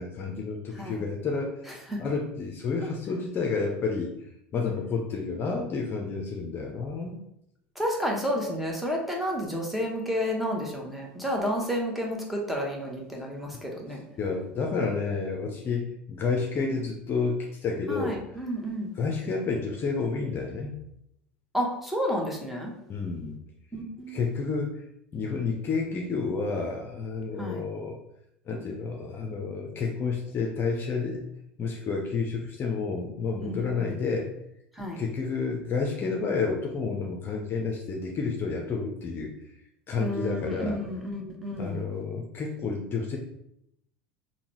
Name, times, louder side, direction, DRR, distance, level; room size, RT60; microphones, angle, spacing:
voice 1, 0.0-1.7 2.0-4.1 4.5-7.2 13.9-18.2 19.0-20.7 22.9-23.4 24.1-24.8 25.1-28.0 28.5-31.3 31.6-34.3 35.0-39.3 39.9-40.8 41.6-43.2, left 4 dB, 40° left, 1 dB, 0.6 m, -30 dB
voice 2, 0.7-1.0 1.9-2.0 7.7-14.0 17.9-18.9 21.5-22.7 23.7-24.5 27.4-27.6 33.5-33.9 34.7-35.0 40.0-41.8, equal, ahead, -1 dB, 0.9 m, -31 dB
3.7 x 2.1 x 3.0 m, 0.77 s
hypercardioid pair, 75°, 6 cm